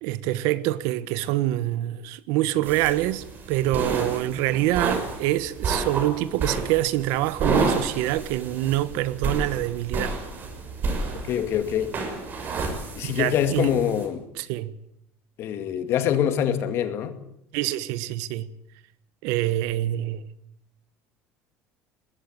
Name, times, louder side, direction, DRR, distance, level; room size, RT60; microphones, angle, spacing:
voice 1, 0.0-10.2 13.0-13.7 14.4-14.8 17.5-18.5 19.2-20.3, right 15 dB, 80° right, 1.3 m, -26 dB
sound 1, 2.6-14.1, right 3 dB, 35° right, 6.1 m, -30 dB
voice 2, 11.3-11.9 13.0-14.3 15.4-17.2, left 9 dB, 50° left, 2.3 m, -24 dB
20.5 x 16.5 x 8.9 m
cardioid pair, 150°, 5 cm